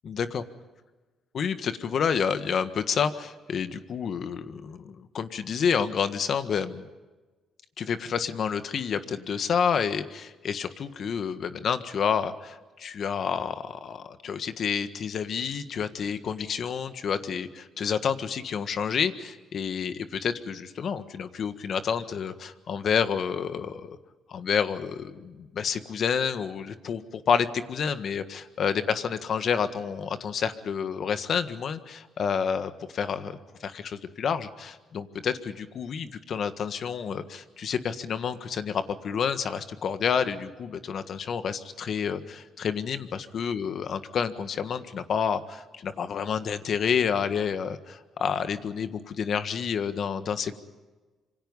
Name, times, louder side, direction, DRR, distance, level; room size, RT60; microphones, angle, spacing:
voice 1, 0.0-0.4 1.3-6.9 7.8-24.0 24.3-50.6, left 7 dB, 60° left, 10 dB, 1.6 m, -29 dB
26.5 x 25.0 x 5.5 m, 1.2 s
cardioid pair, 90°, 0 cm